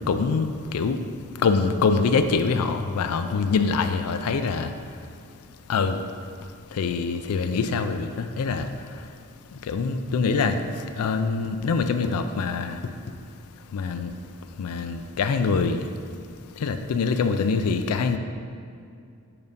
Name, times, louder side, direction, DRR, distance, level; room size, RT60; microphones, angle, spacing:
voice 1, 0.1-1.0 1.4-4.7 5.7-6.0 6.7-8.7 9.7-10.6 11.0-12.8 13.7-14.1 14.6-15.8 16.6-18.2, left 4 dB, 75° left, 8 dB, 0.4 m, -24 dB
6.9 x 2.6 x 5.3 m, 2.4 s
head